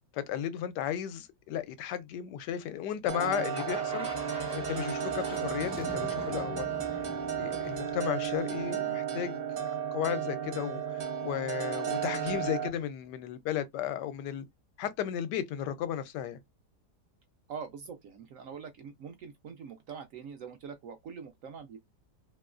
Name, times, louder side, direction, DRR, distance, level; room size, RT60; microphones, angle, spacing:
voice 1, 0.1-6.7 6.9-7.0 7.4-14.4 14.8-16.4, left 10 dB, 80° left, 1.2 m, -34 dB
sound 1, 3.1-12.7, right 8 dB, 90° right, 0.5 m, -34 dB
sound 2, 3.5-8.8, equal, 5° right, 0.5 m, -44 dB
voice 2, 17.5-21.8, right 6 dB, 70° right, 0.8 m, -44 dB
2.9 x 2.9 x 2.4 m
omnidirectional pair, 1.8 m